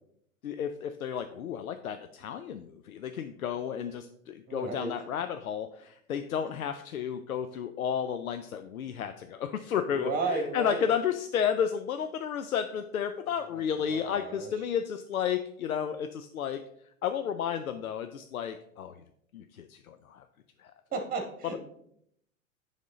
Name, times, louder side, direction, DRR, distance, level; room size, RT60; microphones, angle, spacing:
voice 1, 0.4-16.6 17.0-19.0 19.3-20.2 20.6-20.7, left 8 dB, 85° left, 8 dB, 0.6 m, -32 dB
voice 2, 4.5-4.9 9.9-10.9 13.5-14.5 20.9-21.6, right 3 dB, 20° right, 3 dB, 2.0 m, -33 dB
10.5 x 3.6 x 3.7 m, 0.72 s
hypercardioid pair, 100°, 41 cm